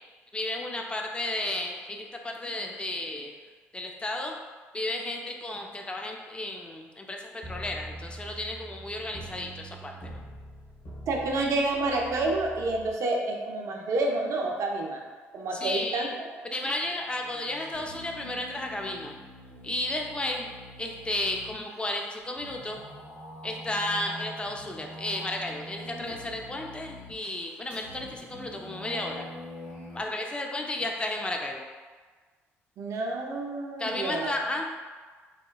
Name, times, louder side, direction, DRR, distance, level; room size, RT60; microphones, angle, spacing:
voice 1, 0.3-3.3 3.7-4.4 4.7-9.9 15.5-16.1 16.5-19.1 19.6-20.5 20.8-22.8 23.4-29.2 29.9-31.6 33.8-34.6, left 1 dB, 15° left, 1 dB, 0.4 m, -33 dB
sound 1, 7.4-12.9, right 1 dB, 60° left, 1.0 m, -44 dB
voice 2, 11.1-15.0 15.3-16.3 32.8-34.3, right 2 dB, 50° right, 0 dB, 0.4 m, -29 dB
sound 2, 16.7-30.0, equal, 90° left, 1.3 m, -45 dB
2.9 x 2.1 x 2.3 m, 1.4 s
figure-of-eight pair, 50°, 7 cm